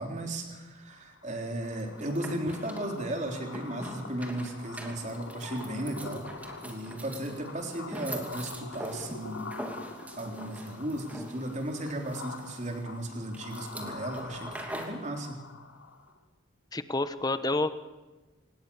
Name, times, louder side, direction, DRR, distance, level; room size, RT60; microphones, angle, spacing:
voice 1, 0.0-6.3 6.6-9.5 10.2-15.4, right 1 dB, 35° right, 3 dB, 3.8 m, -35 dB
sound 1, 0.8-16.2, left 3 dB, 85° left, 3.6 m, -45 dB
sound 2, 1.8-15.0, equal, 5° right, 2.7 m, -44 dB
voice 2, 16.7-17.7, left 2 dB, 20° left, 12 dB, 1.1 m, -28 dB
26.5 x 20.0 x 7.3 m, 1.2 s
head